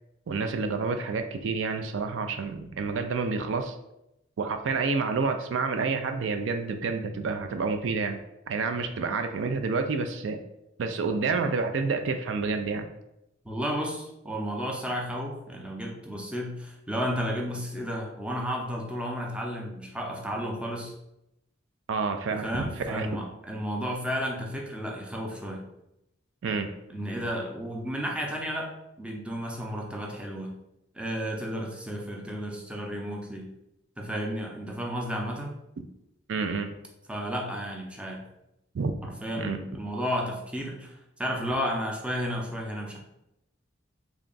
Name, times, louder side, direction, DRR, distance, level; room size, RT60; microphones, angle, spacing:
voice 1, 0.3-3.8 4.4-8.2 8.5-10.4 10.8-12.9 21.9-23.2 26.4-26.7 36.3-36.7 38.7-39.0 39.3-39.6, right 4 dB, 70° right, 7 dB, 0.4 m, -29 dB
voice 2, 13.4-20.9 22.3-25.6 26.9-28.7 29.0-30.5 30.9-33.5 34.0-35.6 37.1-38.2 39.0-43.0, equal, 5° right, -1 dB, 0.5 m, -32 dB
3.5 x 2.3 x 3.8 m, 0.84 s
head